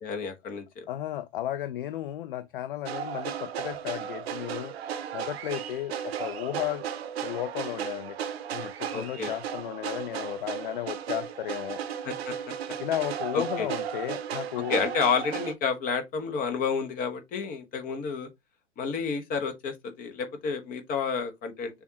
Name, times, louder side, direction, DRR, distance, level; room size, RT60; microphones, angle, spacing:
voice 1, 0.0-0.8 8.9-9.3 12.0-12.3 13.3-13.7 14.6-18.3 18.8-21.8, left 5 dB, 25° left, 1.0 m, -30 dB
voice 2, 0.9-4.7 5.1-6.9 7.2-8.2 8.5-11.8 12.8-14.7, left 13 dB, 50° left, 0.5 m, -34 dB
sound 1, 2.9-15.5, right 9 dB, 60° right, 0.8 m, -35 dB
6.8 x 2.4 x 2.8 m
figure-of-eight pair, 100°, 36 cm